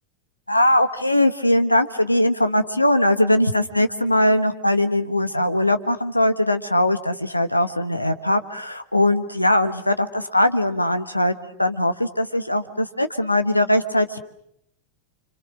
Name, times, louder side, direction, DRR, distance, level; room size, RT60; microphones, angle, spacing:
voice 1, 0.5-14.2, left 1 dB, 85° left, 10 dB, 1.4 m, -20 dB
30.0 x 26.5 x 6.3 m, 0.74 s
figure-of-eight pair, 90°, 0 cm